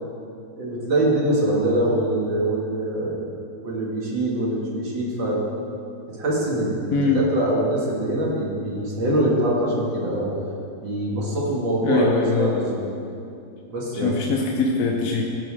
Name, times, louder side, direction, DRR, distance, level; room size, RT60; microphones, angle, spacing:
voice 1, 0.6-3.2 3.6-5.4 6.1-10.3 10.8-12.9 13.7-14.1, right 1 dB, 85° right, -4 dB, 2.6 m, -24 dB
voice 2, 6.9-7.2 11.8-12.7 14.0-15.2, left 4 dB, 55° left, 0 dB, 1.1 m, -22 dB
15.5 x 5.3 x 4.8 m, 2.6 s
omnidirectional pair, 2.0 m